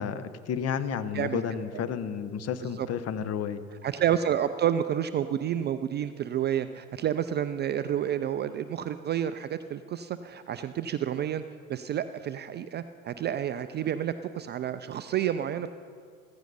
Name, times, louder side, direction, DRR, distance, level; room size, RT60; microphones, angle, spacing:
voice 1, 0.0-3.6, left 7 dB, 35° left, 12 dB, 0.9 m, -31 dB
voice 2, 1.1-1.8 2.6-2.9 3.8-11.4 11.7-15.7, right 10 dB, 25° right, 11 dB, 0.4 m, -30 dB
15.0 x 15.0 x 4.1 m, 2.1 s
hypercardioid pair, 75°, 42 cm